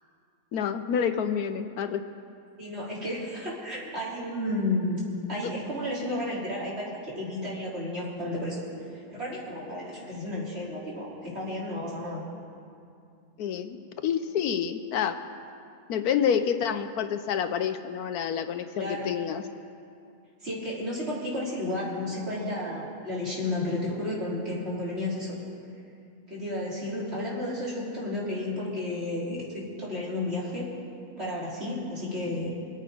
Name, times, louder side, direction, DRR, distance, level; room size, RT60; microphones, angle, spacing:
voice 1, 0.5-2.0 13.4-13.8 14.0-15.2 15.9-19.4, left 8 dB, 75° left, 9 dB, 1.1 m, -28 dB
voice 2, 2.6-5.0 5.3-8.6 9.1-12.2 18.8-19.1 20.4-25.3 26.3-30.7 31.2-32.5, left 1 dB, 40° right, -7 dB, 3.9 m, -32 dB
24.5 x 8.6 x 5.0 m, 2.5 s
omnidirectional pair, 1.7 m